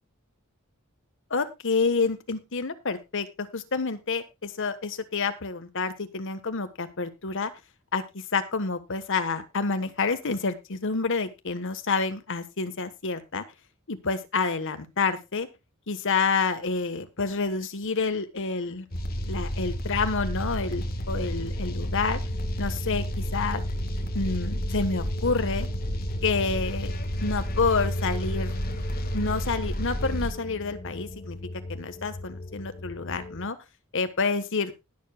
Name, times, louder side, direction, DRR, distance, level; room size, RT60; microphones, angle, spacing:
voice 1, 1.3-7.5 7.9-13.4 13.9-15.5 15.9-18.9 19.3-22.2 22.6-23.6 24.1-25.7 26.2-26.9 27.2-28.6 29.1-31.4 31.7-33.6 33.9-34.7, left 4 dB, 65° left, 10 dB, 1.3 m, -28 dB
sound 1, 18.9-30.3, equal, 45° left, 1.6 m, -31 dB
sound 2, 21.4-33.5, left 2 dB, 30° left, 0.6 m, -40 dB
20.5 x 6.9 x 2.3 m, 0.24 s
head